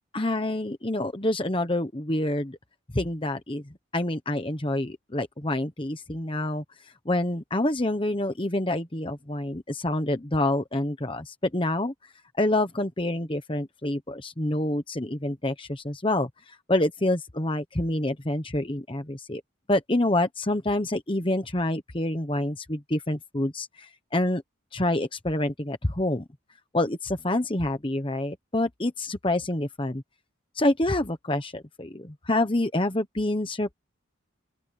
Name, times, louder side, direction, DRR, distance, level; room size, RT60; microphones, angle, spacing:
voice 1, 0.1-2.6 2.9-3.6 3.9-6.6 7.0-11.9 12.4-19.4 19.7-24.4 24.7-26.2 26.7-30.0 30.5-33.7, left 1 dB, 25° left, 1.1 m, -27 dB
open air
head